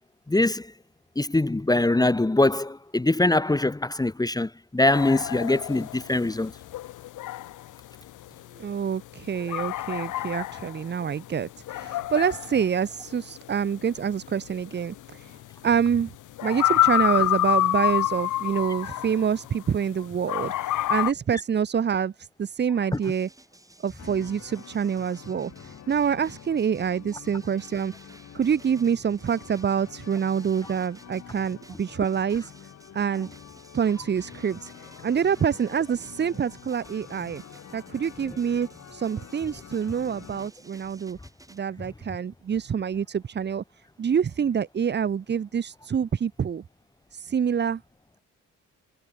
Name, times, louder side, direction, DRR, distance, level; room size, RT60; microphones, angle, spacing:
voice 1, 0.3-0.7 1.1-6.5 22.9-23.0, left 2 dB, 15° left, 1.6 m, -23 dB
sound 1, 4.9-19.9 20.3-21.1, left 14 dB, 80° left, 2.3 m, -27 dB
voice 2, 8.6-15.4 15.6-16.1 16.4-23.3 23.8-27.9 28.3-32.5 32.9-33.3 33.7-37.4 37.7-41.2 41.5-43.6 44.0-46.6 47.1-47.8, right 7 dB, 35° right, 0.9 m, -26 dB
sound 2, 22.9-41.6, right 2 dB, 10° right, 7.3 m, -53 dB
sound 3, 24.0-40.5, left 9 dB, 65° left, 7.4 m, -47 dB
cardioid pair, 90°, 30 cm